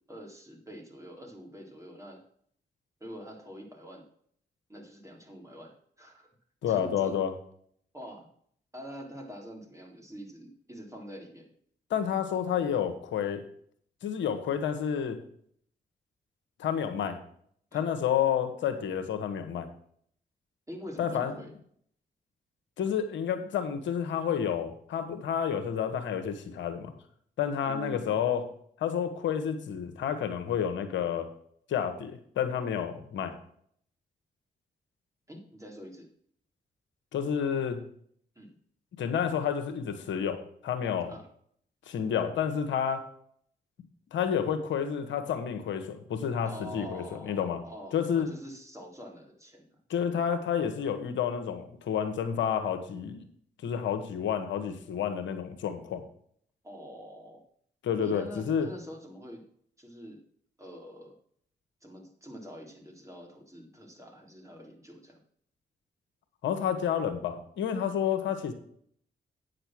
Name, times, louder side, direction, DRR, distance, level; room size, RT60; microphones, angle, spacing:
voice 1, 0.1-2.2 3.0-4.0 4.7-6.3 6.7-7.2 7.9-8.3 8.7-11.5 17.7-17.8 20.7-21.5 27.6-28.1 35.3-36.1 38.4-38.6 41.1-41.3 46.4-49.7 56.6-57.4 58.0-59.4 59.8-60.2 60.6-61.1 61.8-65.2, equal, 15° right, 0 dB, 3.7 m, -45 dB
voice 2, 6.6-7.3 11.9-13.4 14.0-15.2 16.6-17.2 17.7-19.7 21.0-21.3 22.8-26.9 27.4-28.4 28.8-31.3 31.7-33.3 37.1-37.8 39.0-41.1 41.9-43.0 44.1-47.6 47.9-48.3 49.9-53.2 53.6-56.0 57.8-58.7 66.4-68.5, left 8 dB, 85° left, 8 dB, 1.3 m, -30 dB
9.2 x 6.7 x 6.2 m, 0.62 s
supercardioid pair, 45°, 19 cm